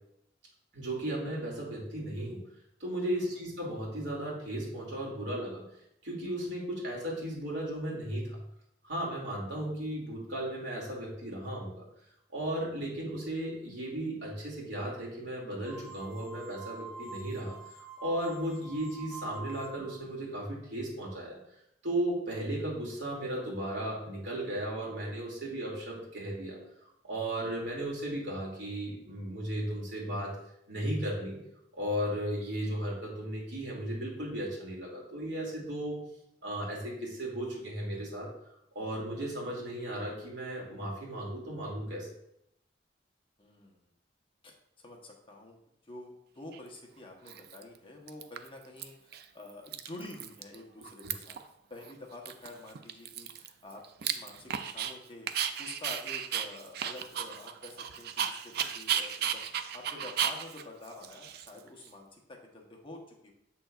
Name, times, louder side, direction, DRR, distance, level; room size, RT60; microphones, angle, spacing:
voice 1, 0.7-2.4 2.8-5.7 6.0-8.4 8.8-11.8 12.3-17.5 18.0-21.4 21.8-26.6 27.0-30.3 30.7-31.4 31.7-36.0 36.4-38.3 38.7-42.1, right 1 dB, 85° right, -3 dB, 2.5 m, -35 dB
sound 1, 15.6-20.0, right 3 dB, 5° left, 1.5 m, -46 dB
voice 2, 43.4-43.9 44.4-45.6 45.8-51.4 51.7-63.3, left 2 dB, 30° left, 1 dB, 1.0 m, -48 dB
Dog, 46.5-46.6 47.3-47.8 48.1-48.8 49.1-49.2 49.5-50.6 50.8-51.5 51.8-51.9 52.3-54.9 55.3-61.9, right 8 dB, 60° right, 0.4 m, -35 dB
7.3 x 6.1 x 2.4 m, 0.77 s
head